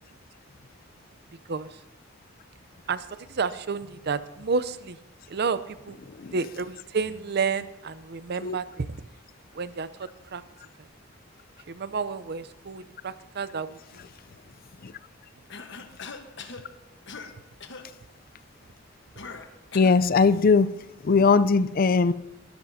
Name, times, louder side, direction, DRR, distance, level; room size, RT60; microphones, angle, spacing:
voice 1, 2.9-5.0 5.3-6.0 6.3-9.0 9.5-9.9 10.3-10.4 10.8-10.9 11.7-14.0, right 5 dB, 55° right, 0.6 m, -30 dB
Cough, 15.5-16.7 17.1-17.3 17.6-17.9 19.2-20.0, left 5 dB, 65° left, 1.2 m, -41 dB
voice 2, 19.7-20.7 21.0-22.1, left 4 dB, 45° left, 0.5 m, -20 dB
21.0 x 13.0 x 2.8 m
head